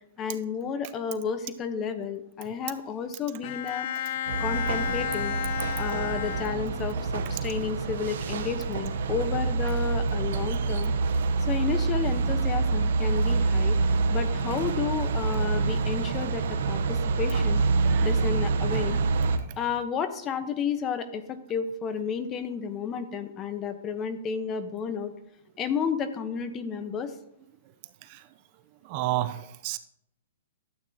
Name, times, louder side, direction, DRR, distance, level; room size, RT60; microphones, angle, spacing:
voice 1, 0.2-3.9 4.4-5.3 5.7-10.9 11.5-13.8 14.1-17.6 18.0-19.0 19.6-25.1 25.6-27.1, left 6 dB, 25° left, 1.0 m, -32 dB
Bowed string instrument, 3.4-7.1, left 10 dB, 50° left, 0.4 m, -32 dB
sound 1, 4.3-19.4, right 4 dB, 65° right, 0.9 m, -26 dB
voice 2, 17.8-18.3 19.5-19.6 28.0-28.3 28.8-29.8, right 15 dB, 40° right, 0.5 m, -32 dB
12.0 x 8.3 x 2.9 m
hypercardioid pair, 135°, 0 cm